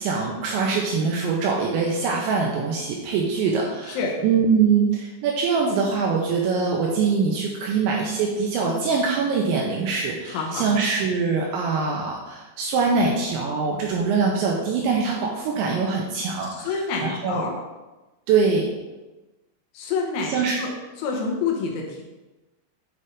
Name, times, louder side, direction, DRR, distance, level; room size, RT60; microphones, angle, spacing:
voice 1, 0.0-17.5 18.3-18.7 20.3-20.6, right 5 dB, 90° right, -1 dB, 2.7 m, -23 dB
voice 2, 10.3-10.7 16.6-17.5 19.7-20.7 21.0-22.0, left 4 dB, 80° left, 0 dB, 3.1 m, -27 dB
8.5 x 3.3 x 5.2 m, 1.1 s
omnidirectional pair, 5.9 m